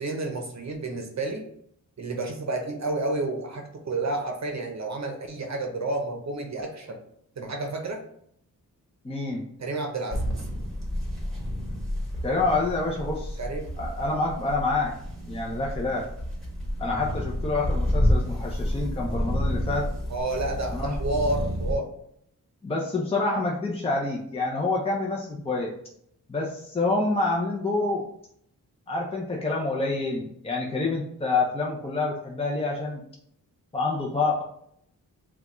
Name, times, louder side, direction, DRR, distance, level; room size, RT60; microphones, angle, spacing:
voice 1, 0.0-1.5 2.0-7.0 7.4-8.0 9.6-10.3 13.4-13.7 20.1-21.9, right 2 dB, 55° right, 3 dB, 0.7 m, -30 dB
voice 2, 9.0-9.5 12.2-13.4 13.8-15.0 15.3-16.0 16.8-19.9 20.7-21.0 22.6-25.7 26.3-28.1 28.9-33.0 33.7-34.4, left 3 dB, 15° left, -1 dB, 0.7 m, -27 dB
sound 1, 10.1-21.8, left 1 dB, ahead, 1.7 m, -29 dB
5.7 x 2.4 x 3.0 m, 0.70 s
wide cardioid pair, 80°, 34 cm